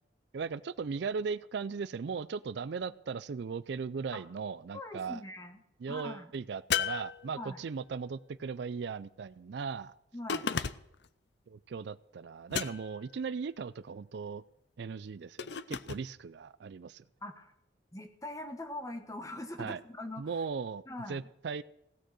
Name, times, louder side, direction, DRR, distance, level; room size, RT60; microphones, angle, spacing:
voice 1, 0.3-5.2 5.8-9.9 11.5-14.4 14.8-17.0 19.6-19.8 20.2-20.8 21.1-21.6, right 5 dB, 60° right, 17 dB, 0.4 m, -38 dB
voice 2, 4.7-5.6 5.9-6.3 7.4-7.6 10.1-10.5 17.2-17.5 17.9-20.3 20.9-21.2, left 1 dB, 15° left, 6 dB, 1.3 m, -42 dB
sound 1, 6.7-7.8 10.3-11.1 12.5-13.1 15.4-16.1, left 7 dB, 60° left, 0.6 m, -34 dB
16.5 x 6.5 x 7.6 m, 0.80 s
head